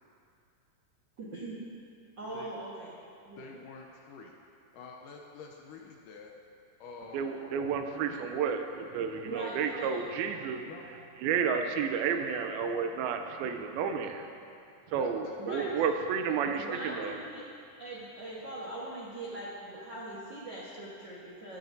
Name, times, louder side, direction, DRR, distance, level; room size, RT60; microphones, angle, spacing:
voice 1, 1.2-1.6 2.2-2.9 3.2-3.5 9.2-10.0 15.4-15.7 16.6-17.5 17.8-21.6, right 1 dB, 70° right, -7 dB, 1.0 m, -41 dB
voice 2, 3.3-4.3 4.7-6.3 6.8-8.4 10.7-10.8 13.8-14.1 14.9-15.9 16.3-17.4, left 4 dB, 75° left, 1 dB, 2.1 m, -48 dB
voice 3, 7.1-10.6 11.2-14.2 14.9-17.1, right 6 dB, 90° right, 6 dB, 2.5 m, -31 dB
15.0 x 13.5 x 2.7 m, 2.5 s
omnidirectional pair, 4.3 m